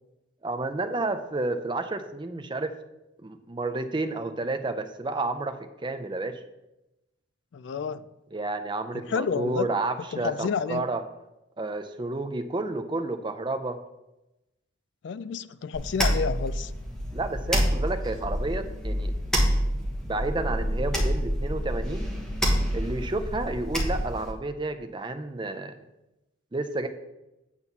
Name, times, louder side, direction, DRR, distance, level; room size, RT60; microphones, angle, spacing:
voice 1, 0.4-2.8 3.2-6.4 8.3-11.0 11.6-13.8 17.1-19.1 19.5-22.1 22.7-25.8 26.5-26.9, right 2 dB, 25° right, 9 dB, 0.5 m, -31 dB
voice 2, 7.5-8.0 9.1-9.7 10.1-10.9 15.0-16.7, left 6 dB, 60° left, 14 dB, 0.3 m, -30 dB
sound 1, 15.7-24.3, equal, 5° left, 1.3 m, -27 dB
8.8 x 4.1 x 7.0 m, 0.95 s
head